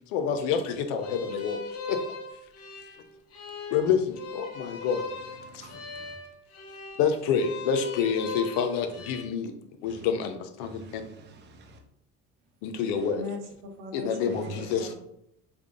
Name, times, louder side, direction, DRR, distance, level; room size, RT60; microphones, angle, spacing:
voice 1, 0.1-1.6 1.9-2.0 3.7-5.0 5.5-5.7 7.0-9.5 9.8-11.0 12.6-13.2 13.9-14.9, left 7 dB, 90° left, 8 dB, 0.6 m, -28 dB
sound 1, 1.0-9.2, left 4 dB, 45° left, 0.9 m, -39 dB
voice 2, 5.4-6.2 9.8-10.1 10.6-11.8 12.9-13.1 14.3-14.9, right 1 dB, 35° right, 3 dB, 0.6 m, -46 dB
voice 3, 13.2-14.9, left 2 dB, 80° right, 3 dB, 0.9 m, -39 dB
3.5 x 2.2 x 3.6 m, 0.75 s
supercardioid pair, 95°, 33 cm